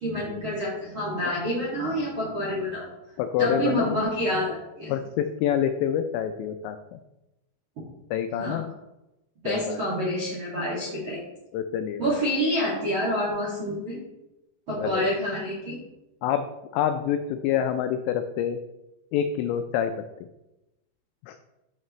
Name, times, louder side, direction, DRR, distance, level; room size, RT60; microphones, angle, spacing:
voice 1, 0.0-2.8 3.4-4.9 8.4-8.6 9.4-11.2 12.0-14.0 14.7-15.8, equal, 45° right, -7 dB, 1.7 m, -27 dB
voice 2, 3.2-3.9 4.9-7.0 8.1-8.7 9.5-9.8 11.5-12.0 14.8-15.1 16.2-16.5 16.7-18.6 19.1-19.9 21.2-21.4, left 9 dB, 90° left, 8 dB, 2.6 m, -27 dB
11.5 x 5.9 x 3.1 m, 0.94 s
omnidirectional pair, 5.7 m